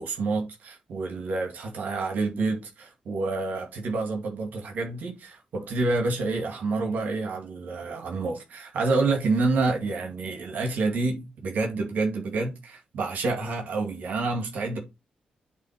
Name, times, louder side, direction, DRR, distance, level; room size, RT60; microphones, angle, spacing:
voice 1, 0.0-14.8, right 3 dB, 75° right, 2.1 m, -28 dB
8.3 x 3.7 x 5.1 m
cardioid pair, 85°, 3 cm